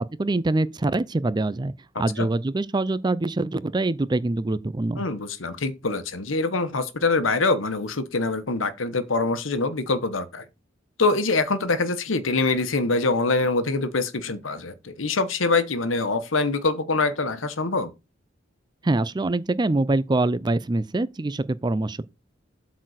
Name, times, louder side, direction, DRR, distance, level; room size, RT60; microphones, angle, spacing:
voice 1, 0.2-5.0 18.8-22.0, right 2 dB, 20° right, 0.4 m, -24 dB
voice 2, 5.0-10.4 11.0-17.9, left 3 dB, 90° left, 1.1 m, -24 dB
8.2 x 4.1 x 6.4 m
head